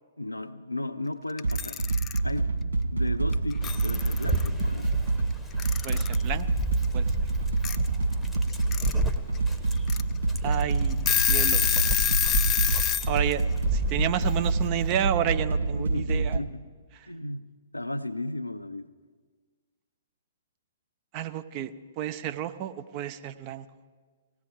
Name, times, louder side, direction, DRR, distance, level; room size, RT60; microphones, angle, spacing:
voice 1, 0.2-1.8 2.2-2.6 2.9-4.9 15.6-16.7 17.1-18.9, left 2 dB, 85° left, 10 dB, 0.6 m, -35 dB
Alarm / Clock, 1.4-2.2 3.3-3.4 3.6-4.5 5.6-6.2 7.6-7.8 8.5-8.9 9.4-9.5 9.9-10.0 10.5-10.6 10.9-13.1, left 10 dB, 20° left, 0.4 m, -26 dB
sound 1, 1.4-16.4, right 3 dB, 70° right, 0.7 m, -27 dB
Dog, 3.6-15.0, equal, ahead, 1.0 m, -34 dB
voice 2, 5.8-6.5 6.9-7.1 10.4-11.8 13.1-13.4 13.7-16.4 16.9-17.1 21.1-23.7, right 11 dB, 30° right, 10 dB, 0.6 m, -31 dB
19.5 x 16.5 x 3.5 m, 1.5 s
figure-of-eight pair, 115°, 0 cm